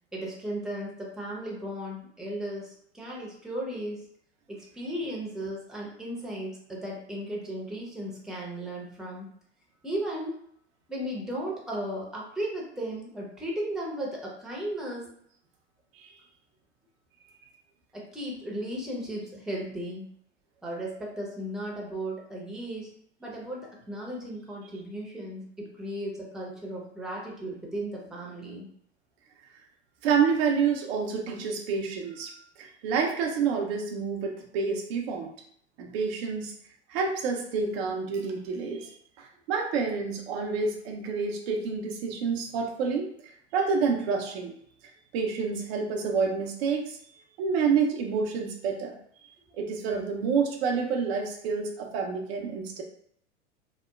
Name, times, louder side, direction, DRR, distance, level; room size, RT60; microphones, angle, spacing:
voice 1, 0.1-4.1 4.5-9.3 9.8-10.3 10.9-15.1 17.9-20.1 20.6-22.9 23.2-28.7, right 1 dB, ahead, -3 dB, 0.7 m, -35 dB
voice 2, 30.0-35.3 35.8-36.5 36.9-43.1 43.5-44.6 45.1-47.0 47.4-49.0 49.5-52.8, right 5 dB, 60° right, 1 dB, 0.6 m, -28 dB
2.9 x 2.1 x 2.3 m, 0.65 s
hypercardioid pair, 90°, 35 cm